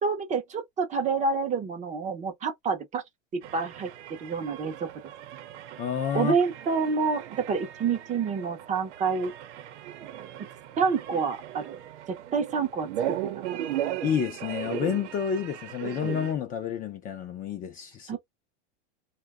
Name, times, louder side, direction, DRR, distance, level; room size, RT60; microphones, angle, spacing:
voice 1, 0.0-3.0 3.3-3.9 4.2-4.9 6.1-9.3 10.8-11.8 12.1-13.1 13.5-13.8 18.1-18.2, right 5 dB, 20° right, 0.6 m, -28 dB
sound 1, 3.4-16.3, right 11 dB, 85° right, 0.8 m, -37 dB
voice 2, 5.8-6.3 14.0-18.2, left 8 dB, 25° left, 0.5 m, -29 dB
2.7 x 2.3 x 3.5 m
supercardioid pair, 140°, 34 cm